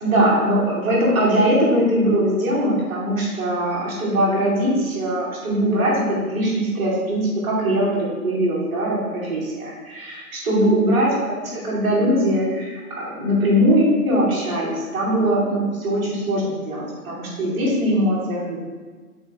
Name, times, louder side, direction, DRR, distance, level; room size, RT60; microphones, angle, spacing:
voice 1, 0.0-18.6, equal, 10° right, -10 dB, 1.1 m, -21 dB
8.0 x 4.4 x 3.5 m, 1.4 s
figure-of-eight pair, 155°, 45 cm